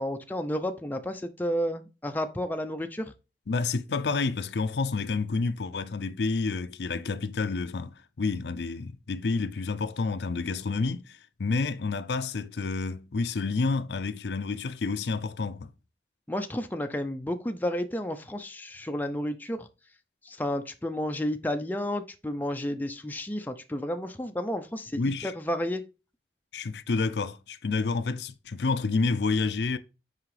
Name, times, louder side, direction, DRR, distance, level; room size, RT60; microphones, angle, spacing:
voice 1, 0.0-3.1 16.3-19.7 20.2-25.8, left 1 dB, 10° left, 0.5 m, -31 dB
voice 2, 3.5-15.7 24.9-25.3 26.5-29.8, left 4 dB, 80° left, 0.5 m, -29 dB
5.9 x 4.9 x 3.2 m
head